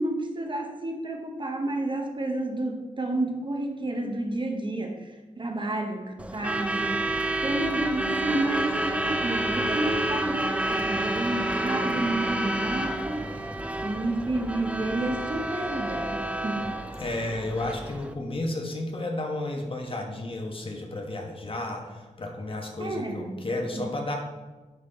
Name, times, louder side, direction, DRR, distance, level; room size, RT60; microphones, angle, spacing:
voice 1, 0.0-7.0 7.4-13.5 13.8-16.7 22.8-23.4 23.7-23.9, right 2 dB, 35° right, 3 dB, 1.0 m, -30 dB
Truck / Alarm, 6.2-18.1, right 1 dB, 10° right, 0.5 m, -29 dB
voice 2, 17.0-24.1, left 2 dB, 40° left, 2 dB, 1.3 m, -32 dB
10.5 x 4.2 x 4.2 m, 1.2 s
wide cardioid pair, 80°, 14 cm